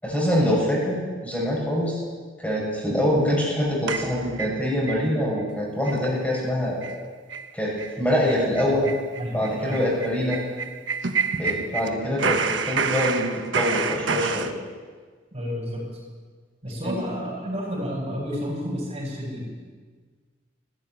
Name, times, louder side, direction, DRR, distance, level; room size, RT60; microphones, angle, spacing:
voice 1, 0.0-2.0 2.4-6.9 7.5-8.9 9.3-10.4 11.3-13.2 13.5-14.5 16.8-16.9, left 1 dB, 10° left, -4 dB, 6.3 m, -24 dB
sound 1, 3.9-5.0 5.4-5.5 5.8-6.1 6.4-6.5 6.8-7.0 7.3-7.5 7.8-7.9 8.3-11.9 12.2-14.5, right 5 dB, 85° right, 1.2 m, -28 dB
voice 2, 9.2-9.8 15.3-15.8 16.6-19.5, equal, 35° right, -3 dB, 8.0 m, -31 dB
18.0 x 14.5 x 9.7 m, 1.5 s
head